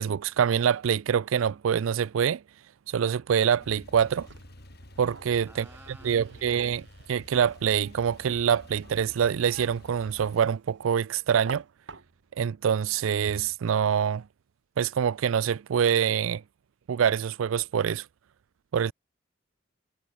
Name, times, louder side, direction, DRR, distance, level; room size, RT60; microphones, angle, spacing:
voice 1, 0.0-2.4 2.9-4.3 5.0-5.6 6.0-6.8 7.1-11.6 12.4-14.2 14.8-16.4 16.9-18.0 18.7-18.9, right 8 dB, 85° right, 0.4 m, -25 dB
Male speech man speaking / Car / Idling, 3.6-10.4, left 1 dB, 55° left, 4.0 m, -50 dB
sound 1, 3.9-12.5, right 4 dB, 65° right, 1.5 m, -49 dB
voice 2, 5.5-6.7, right 1 dB, 10° right, 7.3 m, -52 dB
head